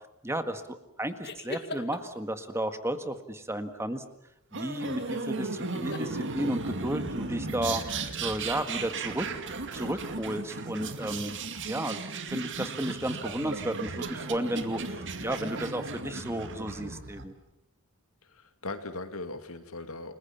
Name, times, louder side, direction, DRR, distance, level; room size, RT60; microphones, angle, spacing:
voice 1, 0.2-4.0 4.5-9.3 9.7-11.3 11.7-17.3, right 1 dB, 10° right, 9 dB, 1.8 m, -33 dB
sound 1, 1.2-2.2 4.9-5.3 5.7-6.0, left 3 dB, 50° left, 2.1 m, -39 dB
sound 2, 4.5-17.2, right 3 dB, 55° right, 2.3 m, -35 dB
voice 2, 18.2-20.1, left 2 dB, 70° left, 8 dB, 2.4 m, -39 dB
30.0 x 21.0 x 7.2 m, 0.82 s
head